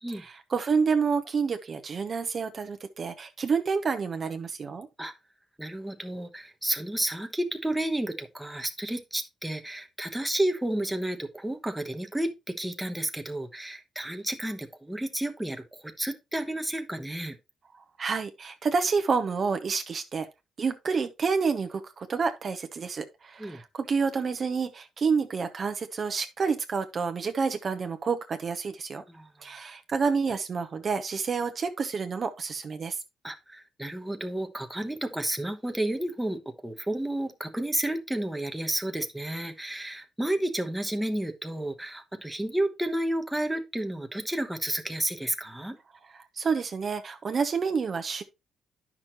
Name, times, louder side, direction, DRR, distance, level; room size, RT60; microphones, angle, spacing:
voice 1, 0.1-4.9 18.0-20.3 20.6-29.0 29.4-33.0 46.4-48.2, right 5 dB, 45° right, 0.8 m, -29 dB
voice 2, 5.6-17.4 23.4-23.6 29.1-29.3 33.2-45.8, right 1 dB, 5° right, 1.0 m, -31 dB
9.7 x 6.0 x 2.9 m
cardioid pair, 90°, 0 cm